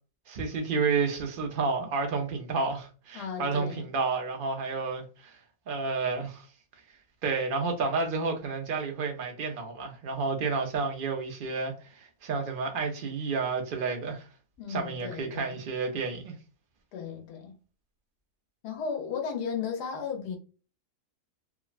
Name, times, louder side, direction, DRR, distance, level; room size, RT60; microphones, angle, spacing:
voice 1, 0.3-5.4 5.7-6.5 7.2-14.3 14.7-16.3, right 4 dB, 55° right, 0.6 m, -30 dB
voice 2, 3.1-3.9 14.6-15.6 16.9-17.6 18.6-20.4, left 6 dB, 85° left, 1.3 m, -35 dB
3.4 x 2.0 x 2.4 m
omnidirectional pair, 1.7 m